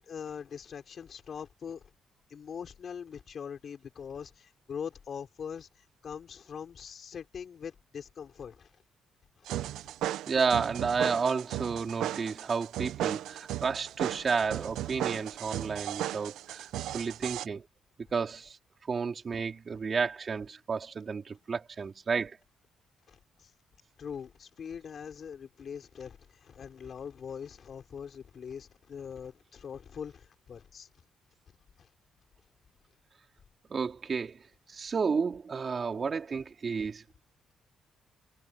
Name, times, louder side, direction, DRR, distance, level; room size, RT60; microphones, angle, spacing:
voice 1, 0.0-1.8 2.3-5.7 6.0-8.7 9.5-9.7 16.9-17.1 23.1-23.5 24.0-30.9 31.8-31.9, left 7 dB, 55° left, 5.6 m, -42 dB
sound 1, 9.5-17.5, right 13 dB, 85° right, 1.1 m, -36 dB
voice 2, 10.3-16.7 16.9-17.6 18.1-18.6 18.9-22.4 33.7-34.4 34.7-37.0, right 5 dB, 40° right, 4.1 m, -31 dB
cardioid pair, 90°, 0 cm